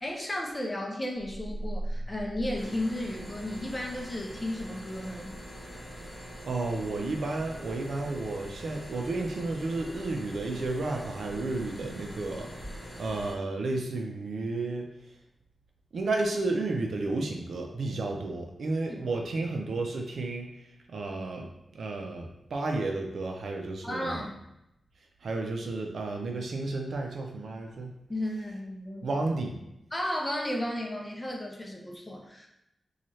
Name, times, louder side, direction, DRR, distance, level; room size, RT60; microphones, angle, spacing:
voice 1, 0.0-5.4 18.9-19.1 23.8-24.4 28.1-29.1 29.9-32.5, left 1 dB, 15° left, 0 dB, 0.6 m, -34 dB
sound 1, 1.2-3.6, right 1 dB, 75° left, 0.7 m, -37 dB
sound 2, 2.6-13.3, equal, 25° right, 1.3 m, -44 dB
voice 2, 6.4-12.7 13.0-14.9 15.9-20.5 20.9-24.2 25.2-27.9 29.0-29.5, right 2 dB, 70° right, 2 dB, 0.5 m, -32 dB
4.1 x 2.4 x 3.1 m, 0.83 s
wide cardioid pair, 120°, 0 cm